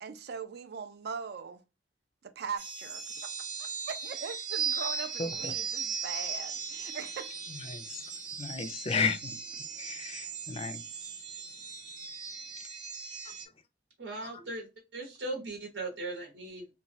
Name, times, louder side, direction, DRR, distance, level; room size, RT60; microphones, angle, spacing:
voice 1, 0.0-1.6 2.2-3.3 3.6-7.4, right 6 dB, 65° right, 0.4 m, -40 dB
sound 1, 2.6-13.5, right 6 dB, 40° right, 0.7 m, -38 dB
voice 2, 8.4-9.4 9.8-10.8, left 5 dB, 35° left, 0.4 m, -33 dB
voice 3, 14.0-14.7 14.9-16.7, right 2 dB, 80° right, 1.0 m, -38 dB
3.0 x 2.2 x 2.6 m
head